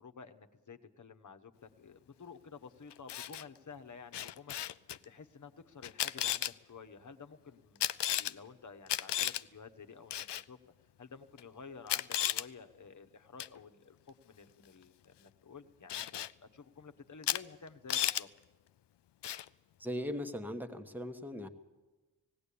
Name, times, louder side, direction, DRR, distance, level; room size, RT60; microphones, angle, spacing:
voice 1, 0.0-7.8 8.2-10.6 11.0-18.3, left 5 dB, 45° left, 7 dB, 1.2 m, -52 dB
Camera, 2.9-3.4 4.1-5.0 5.8-6.5 7.8-8.3 8.9-9.4 10.1-10.4 11.4-11.5 11.9-12.5 13.4-13.6 15.9-16.3 17.2-17.4 17.7-18.2 19.2-19.5, left 12 dB, 70° left, 0.6 m, -34 dB
voice 2, 19.8-21.5, equal, 5° right, 7 dB, 1.2 m, -39 dB
18.0 x 17.5 x 8.5 m, 1.2 s
wide cardioid pair, 90°, 43 cm